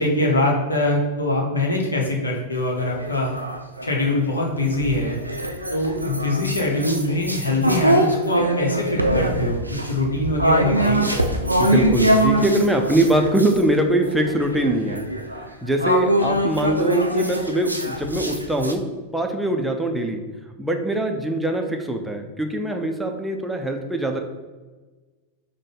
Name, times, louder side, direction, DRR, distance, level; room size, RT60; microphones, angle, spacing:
voice 1, 0.0-3.3 3.8-5.2 5.7-11.1, left 1 dB, 75° left, 0 dB, 0.8 m, -23 dB
sound 1, 2.8-4.1 4.7-13.6 14.0-18.7, right 1 dB, 85° right, 0.4 m, -23 dB
voice 2, 11.6-15.0 15.6-18.8 19.1-20.2 20.6-24.2, right 1 dB, 5° right, 3 dB, 0.4 m, -22 dB
4.9 x 2.1 x 3.8 m, 1.3 s
figure-of-eight pair, 90°, 0 cm